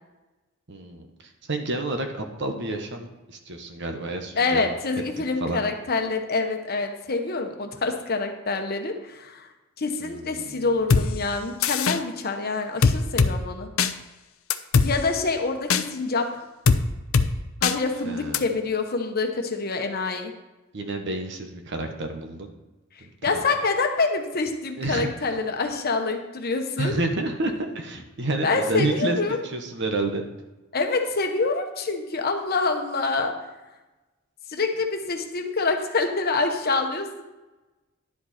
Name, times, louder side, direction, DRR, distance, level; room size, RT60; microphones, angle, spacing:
voice 1, 0.7-4.8 5.2-5.6 10.0-10.8 18.0-18.4 20.7-22.5 23.0-23.5 24.8-25.1 26.8-30.2, right 2 dB, 60° right, 5 dB, 1.2 m, -30 dB
voice 2, 4.4-9.5 9.8-13.7 14.8-16.3 17.6-20.3 23.2-26.9 28.4-29.4 30.7-33.4 34.5-37.2, left 3 dB, 45° left, 5 dB, 1.1 m, -26 dB
sound 1, 10.9-11.1 11.6-12.0 12.8-13.3 13.8-13.9 14.5-14.9 15.7-15.8 16.7-16.8 17.1-17.3 17.6-17.8 18.3-18.4, left 5 dB, 75° left, 0.6 m, -19 dB
11.0 x 7.5 x 4.3 m, 1.1 s
head